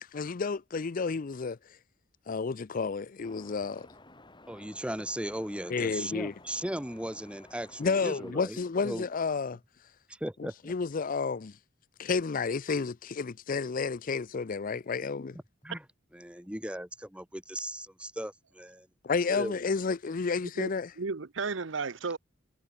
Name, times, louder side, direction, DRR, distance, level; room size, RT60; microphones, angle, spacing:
voice 1, 0.1-1.6 2.3-3.9 5.7-6.3 7.8-9.6 10.4-11.6 12.0-15.4 19.0-20.9, left 4 dB, 45° left, 0.5 m, -31 dB
sound 1, 3.2-8.3, left 2 dB, 25° left, 5.1 m, -54 dB
voice 2, 4.5-8.6 8.8-9.1 10.1-10.7 15.6-15.8 16.1-18.9 19.3-19.6, right 1 dB, 5° right, 2.0 m, -37 dB
voice 3, 20.6-22.2, right 4 dB, 65° right, 0.9 m, -34 dB
head